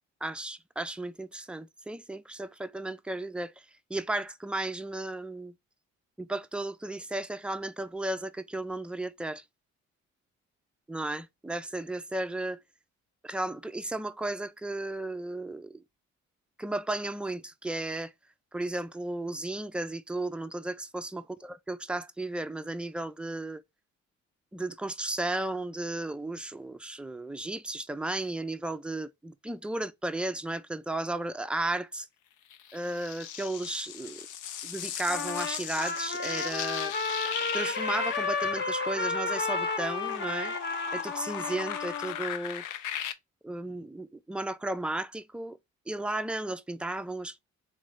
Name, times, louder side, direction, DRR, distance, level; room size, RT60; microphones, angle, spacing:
voice 1, 0.2-5.5 6.2-9.4 10.9-12.6 13.2-15.8 16.6-18.1 18.5-23.6 24.5-32.1 32.7-34.2 34.6-36.9 37.5-40.6 40.9-42.6 43.4-45.6 45.9-47.4, right 2 dB, 5° right, 0.4 m, -34 dB
sound 1, 32.5-43.1, left 10 dB, 90° left, 0.6 m, -38 dB
Trumpet, 35.1-42.2, left 3 dB, 35° left, 1.0 m, -32 dB
3.8 x 3.1 x 3.5 m
cardioid pair, 90°, 30 cm